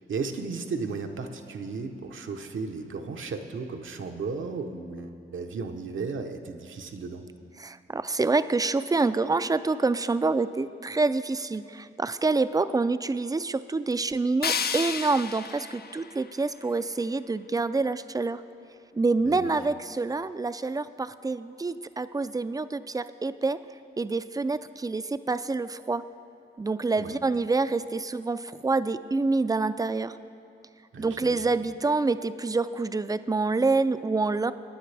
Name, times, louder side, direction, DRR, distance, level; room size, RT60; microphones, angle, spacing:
voice 1, 0.1-7.3 19.2-19.5 27.0-27.1 30.9-31.5, right 4 dB, 75° right, 4 dB, 0.9 m, -35 dB
voice 2, 7.6-18.4 18.9-23.6 24.0-26.0 26.6-30.2 31.0-34.5, right 3 dB, 20° right, 13 dB, 0.4 m, -27 dB
sound 1, 14.4-17.4, left 6 dB, 50° left, 0.5 m, -33 dB
20.5 x 9.5 x 3.4 m, 2.5 s
cardioid pair, 65°, 20 cm